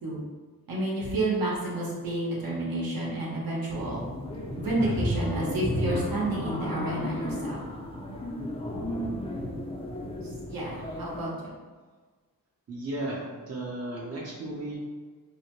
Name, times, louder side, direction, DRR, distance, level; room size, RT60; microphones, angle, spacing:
voice 1, 0.7-4.0 4.5-7.6 10.5-11.3, right 1 dB, 65° right, -5 dB, 1.0 m, -30 dB
sound 1, 3.7-11.2, equal, 15° left, 0.4 m, -33 dB
voice 2, 10.6-11.1 12.7-14.8, right 1 dB, 40° right, -5 dB, 0.7 m, -35 dB
2.7 x 2.1 x 2.9 m, 1.4 s
cardioid pair, 65°, 38 cm